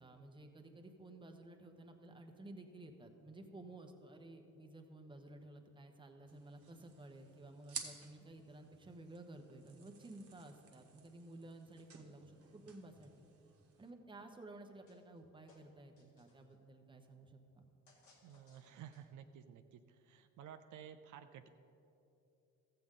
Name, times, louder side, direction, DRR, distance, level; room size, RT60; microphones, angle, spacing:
voice 1, 0.0-13.1 13.8-17.7, right 2 dB, 15° right, 4 dB, 1.0 m, -54 dB
sound 1, 6.3-13.9, right 6 dB, 50° right, 1.2 m, -54 dB
sound 2, 14.9-15.2 15.5-16.5 17.9-19.3, left 3 dB, 75° left, 1.9 m, -69 dB
voice 2, 18.2-21.5, right 9 dB, 75° right, 8 dB, 0.5 m, -54 dB
13.5 x 7.8 x 3.7 m, 2.7 s
cardioid pair, 90°, 30 cm